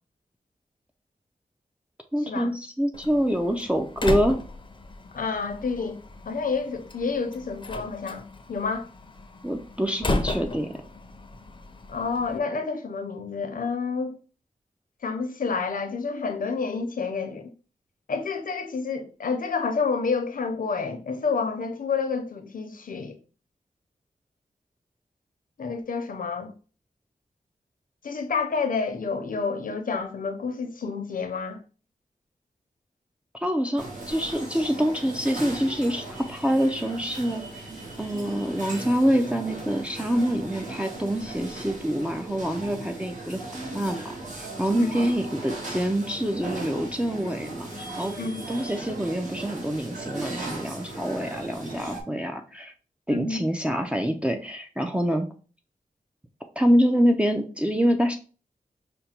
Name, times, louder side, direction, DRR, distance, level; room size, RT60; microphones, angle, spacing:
voice 1, 2.1-4.4 9.4-10.8 33.3-37.4 38.0-43.4 43.7-48.2 48.5-52.7 53.1-55.3 56.6-58.2, equal, 10° right, 0.5 m, -26 dB
Slam, 2.9-12.4, left 2 dB, 35° left, 0.6 m, -35 dB
voice 2, 5.1-6.0 6.3-8.2 8.5-8.9 11.9-14.2 15.0-17.5 18.1-23.2 25.6-26.5 28.0-31.6 44.7-45.0 48.2-48.4 53.1-53.5, left 5 dB, 75° left, 0.8 m, -29 dB
sound 1, 33.8-52.0, right 2 dB, 60° right, 1.6 m, -37 dB
5.2 x 2.2 x 4.3 m
wide cardioid pair, 110°, 14 cm